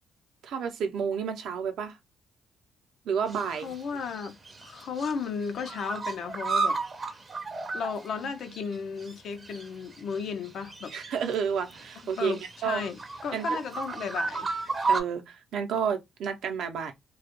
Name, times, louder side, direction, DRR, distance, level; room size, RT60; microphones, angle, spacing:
voice 1, 0.4-2.0 3.0-3.7 10.9-12.8 13.3-13.5 14.9-16.9, right 7 dB, 75° right, 0.5 m, -30 dB
sound 1, 3.3-3.8 4.1-5.1 5.4-8.8 9.0-9.1 9.4-11.3 11.7-15.0, right 4 dB, 30° right, 0.5 m, -33 dB
voice 2, 3.5-4.4 4.6-6.8 7.7-10.9 12.2-14.6, left 5 dB, 65° left, 0.5 m, -34 dB
2.2 x 2.1 x 2.9 m
cardioid pair, 90°, 0 cm